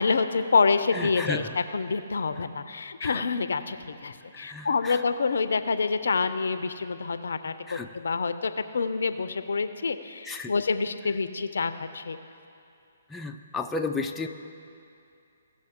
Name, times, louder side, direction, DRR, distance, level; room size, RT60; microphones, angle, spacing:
voice 1, 0.0-12.2, left 4 dB, 75° left, 11 dB, 0.5 m, -27 dB
voice 2, 0.9-1.5 3.0-3.2 4.3-5.0 7.7-7.9 10.3-10.5 13.1-14.3, left 3 dB, 5° left, 2 dB, 0.4 m, -33 dB
17.5 x 6.4 x 3.6 m, 2.5 s
hypercardioid pair, 140°, 0 cm